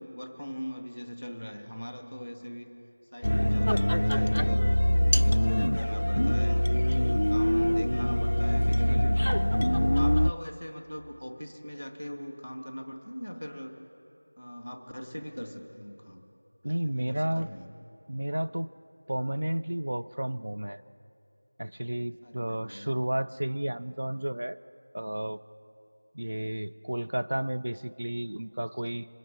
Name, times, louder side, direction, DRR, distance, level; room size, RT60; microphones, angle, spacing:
voice 1, 0.0-2.7 3.1-4.7 5.0-6.6 7.0-9.1 9.7-13.8 14.4-16.2 16.8-17.7 22.2-22.9, equal, 5° right, 5 dB, 1.3 m, -40 dB
sound 1, 3.2-10.3, equal, 65° left, 0.3 m, -24 dB
voice 2, 8.9-9.5 16.6-17.5 18.1-18.7 19.1-20.8 21.6-24.6 24.9-25.4 26.1-29.1, right 1 dB, 25° right, 9 dB, 0.4 m, -32 dB
26.0 x 11.0 x 4.0 m, 2.8 s
figure-of-eight pair, 180°, 0 cm